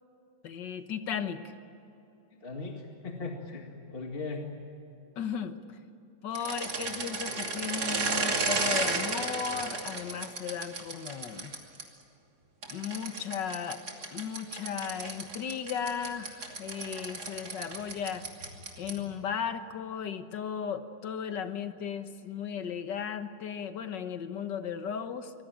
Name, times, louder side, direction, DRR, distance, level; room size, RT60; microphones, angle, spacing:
voice 1, 0.4-1.4 5.2-5.8 6.2-11.6 12.7-13.8 14.1-18.3 18.8-25.3, left 7 dB, 80° left, 9 dB, 1.9 m, -36 dB
voice 2, 2.3-4.4, left 3 dB, 30° left, 2 dB, 2.1 m, -38 dB
sound 1, 6.3-11.8 12.6-19.1, right 3 dB, 60° right, 3.2 m, -34 dB
25.0 x 20.0 x 9.0 m, 2.8 s
omnidirectional pair, 1.9 m